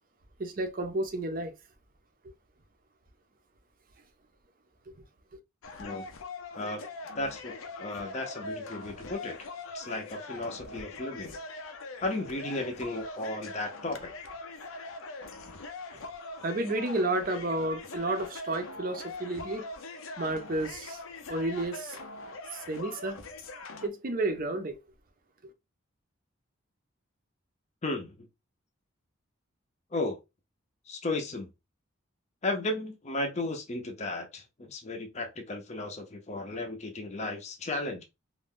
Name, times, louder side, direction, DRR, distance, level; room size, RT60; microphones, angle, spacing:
voice 1, 0.4-1.5 16.4-19.7 20.2-21.0 21.3-22.0 22.5-23.2 23.8-24.7, right 2 dB, 45° right, 0.5 m, -31 dB
sound 1, 5.6-23.9, left 3 dB, 80° left, 0.5 m, -42 dB
voice 2, 7.1-9.3 9.7-11.4 12.0-14.1 27.8-28.3 29.9-30.2 30.9-31.5 32.4-38.0, left 2 dB, 35° left, 0.5 m, -34 dB
2.5 x 2.2 x 3.6 m
head